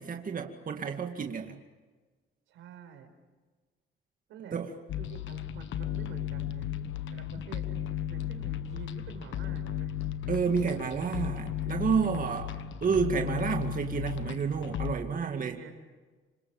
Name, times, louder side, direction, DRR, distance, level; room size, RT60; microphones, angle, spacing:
voice 1, 0.0-1.6 4.5-4.7 10.3-12.5 12.8-15.6, right 6 dB, 45° right, 3 dB, 2.2 m, -30 dB
voice 2, 2.5-3.1 4.3-4.6 5.0-6.7 7.1-7.8 8.1-9.9 10.5-11.1 15.2-15.7, right 7 dB, 90° right, 5 dB, 5.0 m, -48 dB
sound 1, 4.9-15.0, left 10 dB, 75° left, 1.3 m, -35 dB
27.5 x 25.0 x 7.3 m, 1.3 s
cardioid pair, 90°, 20 cm